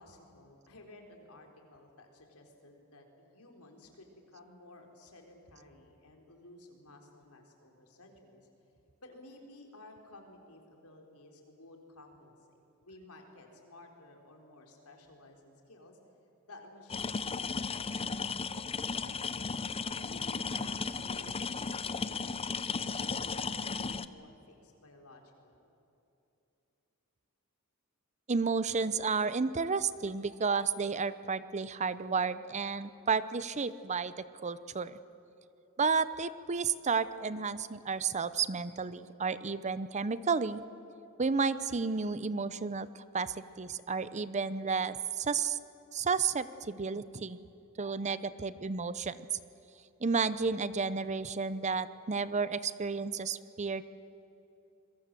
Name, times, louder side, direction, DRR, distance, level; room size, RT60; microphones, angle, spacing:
voice 1, 0.0-8.5 9.0-16.0 16.4-17.8 18.1-18.5 19.0-19.6 20.0-25.7, left 2 dB, 85° left, 2 dB, 4.0 m, -55 dB
sound 1, 16.9-24.1, left 5 dB, 25° left, 0.6 m, -35 dB
voice 2, 28.3-34.9 35.8-40.6 41.2-45.6 45.9-47.4 47.8-49.4 50.0-53.8, right 5 dB, 30° right, 15 dB, 0.7 m, -32 dB
27.0 x 22.0 x 7.5 m, 2.9 s
head